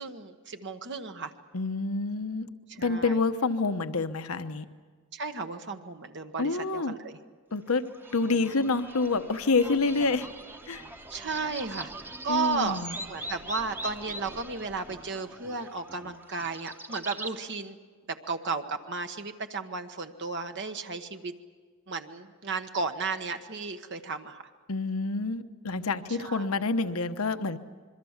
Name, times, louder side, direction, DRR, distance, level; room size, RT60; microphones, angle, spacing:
voice 1, 0.0-1.3 2.7-3.2 5.1-7.2 11.1-17.8 18.1-21.3 21.9-24.4 26.2-26.5, right 4 dB, 55° right, 7 dB, 1.2 m, -34 dB
voice 2, 1.5-2.5 2.8-4.7 6.4-7.0 7.5-7.8 8.1-10.3 10.7-10.9 12.3-13.0 24.7-27.6, left 3 dB, 75° left, 10 dB, 1.1 m, -27 dB
sound 1, 7.7-17.4, right 1 dB, 10° right, 1.0 m, -42 dB
26.0 x 23.0 x 7.3 m, 1.5 s
head